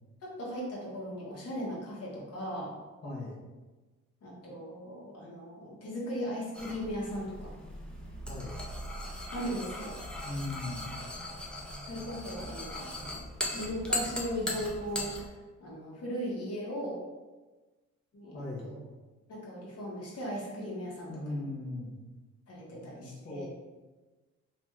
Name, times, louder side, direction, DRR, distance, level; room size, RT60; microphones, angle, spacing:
voice 1, 0.2-2.7 4.2-7.5 9.3-10.0 11.9-13.1 13.5-17.0 18.1-18.8 19.3-21.4 22.5-23.5, equal, 55° left, -4 dB, 1.0 m, -38 dB
voice 2, 3.0-3.4 8.3-8.6 10.2-10.9 18.3-18.7 21.1-22.0 22.7-23.5, left 2 dB, 35° left, -7 dB, 0.7 m, -39 dB
sound 1, 6.5-15.3, left 1 dB, 5° left, 0.4 m, -38 dB
2.6 x 2.2 x 3.1 m, 1.2 s
cardioid pair, 90°, 30 cm